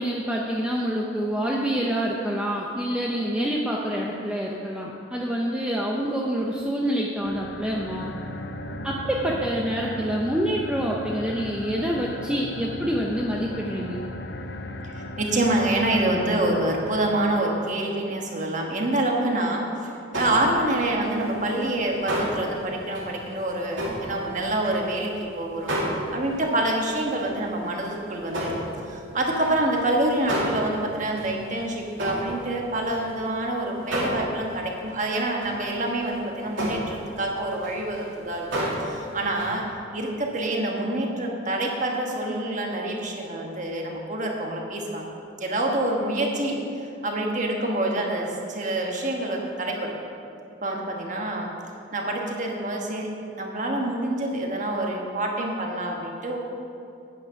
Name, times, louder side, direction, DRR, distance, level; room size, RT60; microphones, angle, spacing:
voice 1, 0.0-8.1 8.8-14.0, equal, 5° right, -3 dB, 0.6 m, -27 dB
sound 1, 7.2-17.6, left 1 dB, 55° left, 0.6 m, -37 dB
voice 2, 14.8-25.8 26.1-38.5 38.8-39.6 39.9-45.1 45.4-46.6 47.0-49.9 50.6-51.5 51.9-56.4, right 1 dB, 40° right, 0 dB, 1.4 m, -27 dB
sound 2, 20.1-20.7 21.0-25.2 25.6-26.8 27.2-27.4 27.7-33.4 33.8-34.6 34.9-35.0 35.4-35.6 36.1-36.2 36.6-39.0 39.3-39.6, equal, 75° right, 2.7 m, -32 dB
9.6 x 9.2 x 5.8 m, 2.7 s
head